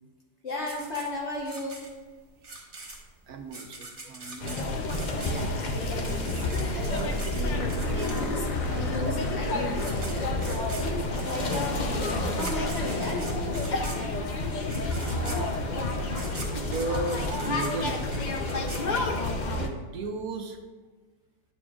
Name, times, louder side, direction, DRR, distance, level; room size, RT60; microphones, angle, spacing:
voice 1, 0.4-1.9 5.2-10.3 10.7-13.5, left 1 dB, 45° left, -1 dB, 1.3 m, -35 dB
sound 1, 0.7-8.6 9.4-9.5 9.7-19.4, right 3 dB, 35° right, 1.5 m, -43 dB
voice 2, 3.3-4.8 15.7-18.0 19.4-20.6, right 3 dB, 70° right, 6 dB, 1.0 m, -36 dB
sound 2, 4.4-19.7, left 2 dB, 80° left, 0.4 m, -29 dB
sound 3, 7.5-13.0 15.3-15.4 18.2-18.3, left 3 dB, 60° left, 1.2 m, -39 dB
10.0 x 7.0 x 2.4 m, 1.4 s
omnidirectional pair, 1.8 m